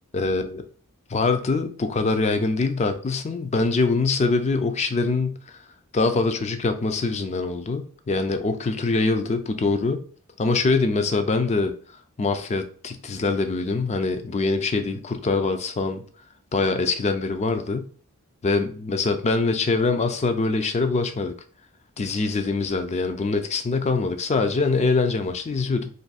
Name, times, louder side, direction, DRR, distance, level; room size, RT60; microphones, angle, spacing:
voice 1, 0.1-0.6 1.1-5.4 5.9-10.0 10.4-11.7 12.2-16.0 16.5-17.9 18.4-21.3 22.0-25.9, left 3 dB, 30° left, 0.4 m, -24 dB
2.6 x 2.5 x 3.9 m
head